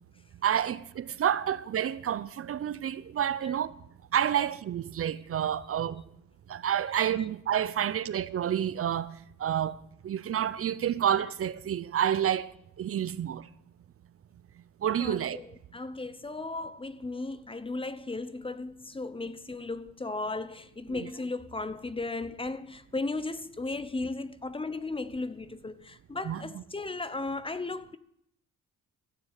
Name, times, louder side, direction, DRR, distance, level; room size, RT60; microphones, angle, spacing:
voice 1, 0.4-3.7 4.1-6.0 6.5-9.1 9.4-9.8 10.0-12.5 12.8-13.5 14.8-15.4 20.9-21.1 26.2-26.6, right 9 dB, 50° right, 0.7 m, -29 dB
voice 2, 15.0-28.0, left 3 dB, 20° left, 0.9 m, -36 dB
15.0 x 6.9 x 8.3 m
cardioid pair, 90°, 30 cm